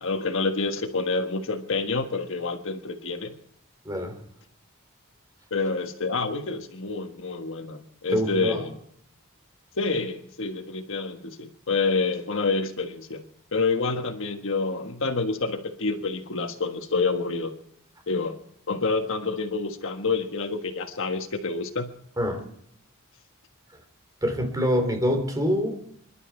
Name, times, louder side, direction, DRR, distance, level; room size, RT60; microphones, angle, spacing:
voice 1, 0.0-3.4 5.5-8.7 9.7-13.2 13.5-17.5 18.1-18.4 18.7-21.9, left 3 dB, 65° left, 6 dB, 1.4 m, -28 dB
voice 2, 3.8-4.2 8.1-8.6 22.2-22.4 24.2-25.8, equal, 15° right, 5 dB, 2.9 m, -25 dB
26.0 x 12.0 x 4.4 m, 0.71 s
head